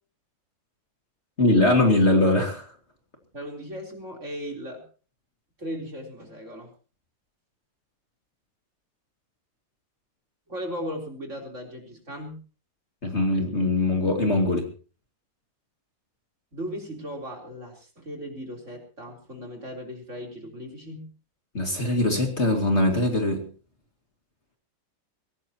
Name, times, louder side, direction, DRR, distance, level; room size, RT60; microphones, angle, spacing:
voice 1, 1.4-2.6 13.0-14.7 21.5-23.4, left 2 dB, 35° left, 3 dB, 2.6 m, -21 dB
voice 2, 3.3-4.8 5.6-6.7 10.5-12.4 16.5-21.1, equal, 40° right, 1 dB, 4.2 m, -37 dB
22.0 x 17.5 x 3.0 m, 0.38 s
omnidirectional pair, 2.0 m